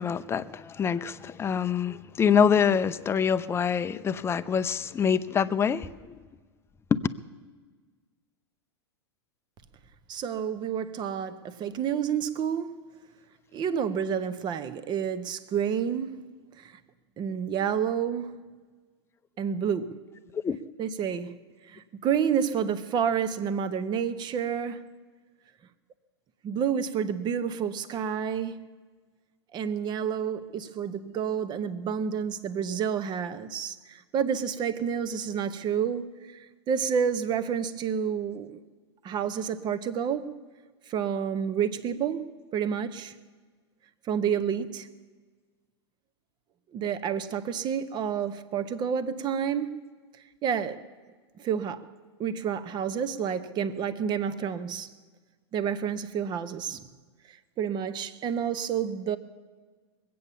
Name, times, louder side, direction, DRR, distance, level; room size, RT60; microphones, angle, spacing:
voice 1, 0.0-5.9 6.9-7.0 20.4-20.6, left 7 dB, 15° left, 0.6 m, -25 dB
voice 2, 10.1-12.8 13.5-16.2 16.6-16.8 17.2-18.5 19.4-20.0 20.8-21.4 21.7-24.8 26.4-28.7 29.5-36.4 36.7-38.6 39.0-40.3 40.9-42.3 42.5-43.1 44.1-44.9 46.7-49.8 50.4-50.8 51.4-51.9 52.2-54.9 55.5-56.9 57.3-59.2, right 7 dB, 30° right, 0.9 m, -29 dB
21.0 x 8.6 x 6.9 m
hypercardioid pair, 110°, 14 cm